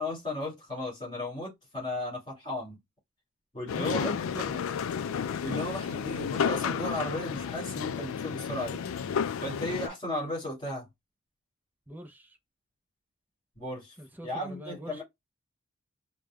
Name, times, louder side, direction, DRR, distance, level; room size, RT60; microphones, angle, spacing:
voice 1, 0.0-2.8 3.5-4.2 5.4-8.9 9.4-10.9 13.6-14.0 14.2-15.0, left 1 dB, 25° left, 2.6 m, -35 dB
sound 1, 3.7-9.9, left 7 dB, 70° left, 0.3 m, -32 dB
voice 2, 3.7-4.1 4.3-4.7 11.9-12.4 14.0-15.0, right 1 dB, 10° right, 0.5 m, -43 dB
5.1 x 2.1 x 2.2 m
head